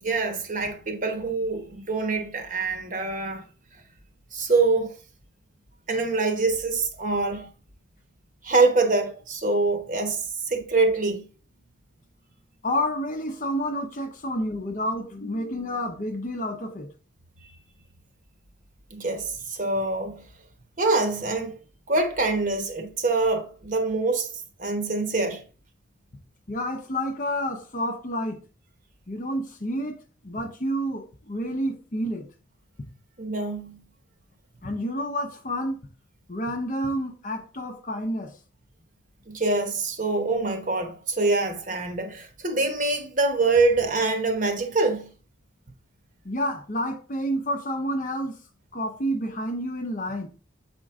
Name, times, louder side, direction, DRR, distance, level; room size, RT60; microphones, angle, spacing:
voice 1, 0.0-3.4 4.3-4.9 5.9-7.5 8.4-11.3 17.4-17.5 18.9-20.2 20.8-21.5 21.9-24.3 24.6-25.4 33.2-33.8 39.3-45.1, right 3 dB, 40° right, 1.0 m, -25 dB
voice 2, 12.6-16.9 26.5-28.4 29.1-30.0 30.2-32.3 34.6-35.8 36.3-38.4 46.2-48.4 48.7-50.3, equal, 40° left, 0.7 m, -29 dB
7.5 x 4.4 x 3.6 m
head